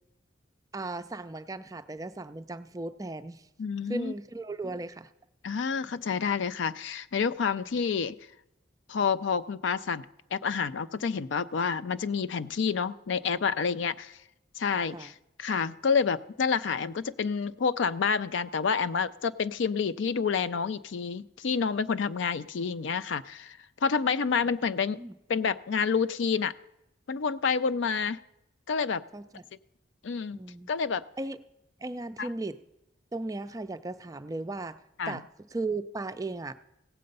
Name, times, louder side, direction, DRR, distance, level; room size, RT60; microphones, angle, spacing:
voice 1, 0.7-3.5 3.9-5.1 14.9-15.1 24.9-25.1 29.1-29.4 30.3-30.7 31.2-31.4 31.8-32.6 33.1-34.8 35.1-35.3 35.5-36.5, right 2 dB, 20° right, 10 dB, 0.4 m, -36 dB
voice 2, 3.6-4.1 5.4-8.1 8.9-10.1 10.3-14.2 14.6-25.0 25.3-26.5 27.1-28.2 28.7-29.0 30.0-30.4 30.7-31.0 32.2-32.3 35.0-35.2, left 6 dB, 75° left, 15 dB, 0.4 m, -28 dB
16.5 x 7.7 x 5.4 m, 0.87 s
head